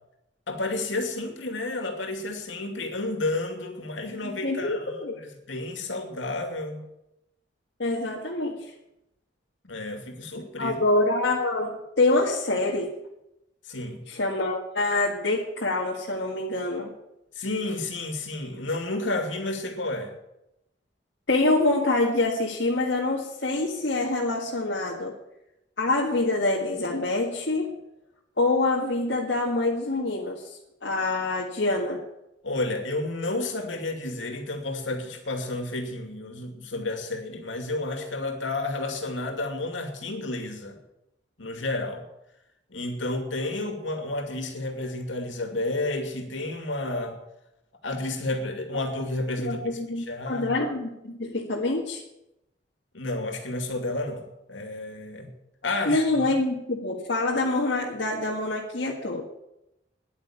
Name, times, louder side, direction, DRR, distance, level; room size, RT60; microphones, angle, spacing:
voice 1, 0.5-6.9 9.6-10.8 13.7-14.0 17.4-20.1 32.4-40.8 41.4-42.0 42.7-47.2 47.8-49.6 50.0-50.5 52.9-55.3 55.6-56.3, left 2 dB, 80° left, 5 dB, 2.5 m, -31 dB
voice 2, 4.2-5.1 7.8-8.6 10.6-12.9 14.1-16.9 21.3-25.1 25.8-27.7 28.4-30.4 30.8-32.0 49.4-52.0 55.9-59.2, left 2 dB, 65° left, -3 dB, 1.8 m, -26 dB
10.5 x 9.5 x 9.9 m, 0.87 s
head